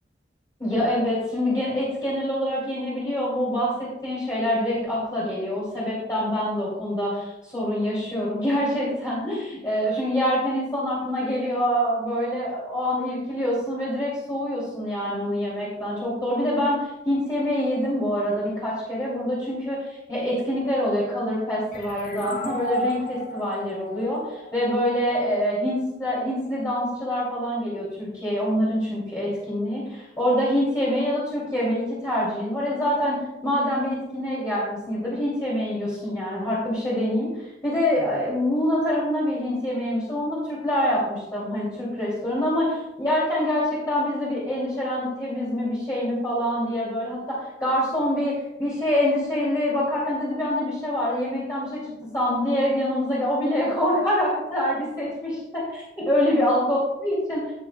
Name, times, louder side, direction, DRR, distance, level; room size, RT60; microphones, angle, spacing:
voice 1, 0.6-37.3 37.6-51.8 52.1-57.4, equal, 20° left, -10 dB, 2.9 m, -25 dB
sound 1, 21.7-25.1, equal, 45° left, 2.0 m, -33 dB
17.0 x 6.4 x 2.3 m, 0.94 s
head